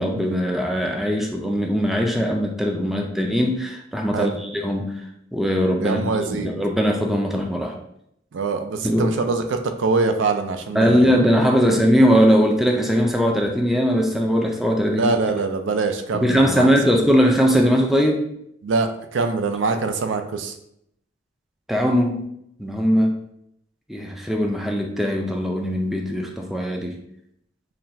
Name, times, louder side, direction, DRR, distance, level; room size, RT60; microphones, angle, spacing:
voice 1, 0.0-5.0 5.3-7.8 8.8-9.1 10.7-15.1 16.1-18.3 21.7-22.2 22.6-23.1 23.9-27.0, equal, ahead, 1 dB, 0.4 m, -20 dB
voice 2, 5.8-6.5 8.3-11.2 11.6-11.9 14.9-16.7 18.6-20.5, right 4 dB, 75° right, 7 dB, 0.4 m, -24 dB
5.7 x 2.2 x 2.6 m, 0.75 s
head